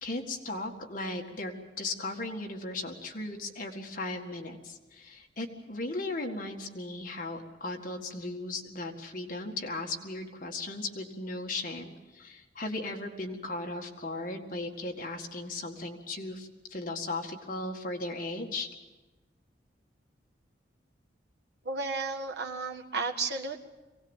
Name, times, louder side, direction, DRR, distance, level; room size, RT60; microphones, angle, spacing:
voice 1, 0.0-18.7, left 2 dB, 50° left, 2 dB, 1.9 m, -37 dB
voice 2, 21.6-23.6, right 3 dB, 70° right, 1 dB, 1.7 m, -33 dB
23.5 x 18.0 x 7.3 m, 1.2 s
head